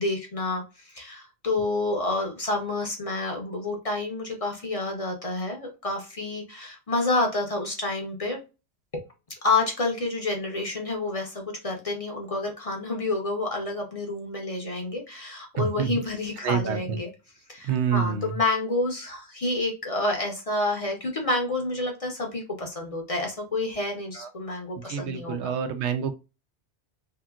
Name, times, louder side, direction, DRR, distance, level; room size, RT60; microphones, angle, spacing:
voice 1, 0.0-8.4 8.9-9.0 9.4-17.1 17.5-25.5, left 2 dB, 40° left, 2 dB, 0.7 m, -29 dB
voice 2, 15.6-16.0 16.4-17.0 17.6-18.4 24.2-24.3 24.9-26.1, right 7 dB, 85° right, 8 dB, 0.9 m, -27 dB
2.8 x 2.6 x 2.3 m, 0.29 s
omnidirectional pair, 1.1 m